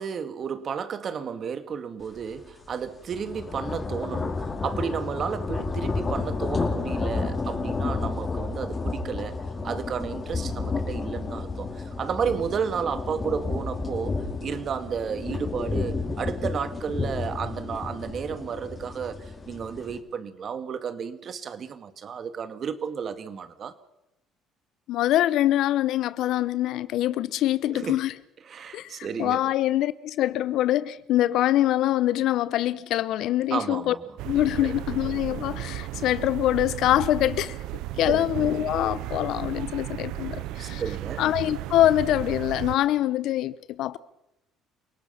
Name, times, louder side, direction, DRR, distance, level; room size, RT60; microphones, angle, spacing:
voice 1, 0.0-9.4 9.6-23.8 27.7-28.0 28.5-29.4 33.5-34.0 34.6-34.7 38.0-38.3 40.3-41.2, right 7 dB, 50° right, 2.0 m, -32 dB
sound 1, 2.2-2.4 2.7-20.0, left 3 dB, 30° left, 4.6 m, -31 dB
voice 2, 24.9-28.1 28.7-33.9 34.2-37.6 38.0-40.8 41.2-44.0, left 13 dB, 70° left, 0.8 m, -24 dB
sound 2, 34.2-42.8, right 15 dB, 75° right, 0.7 m, -34 dB
28.5 x 18.5 x 5.8 m
supercardioid pair, 70°, 0 cm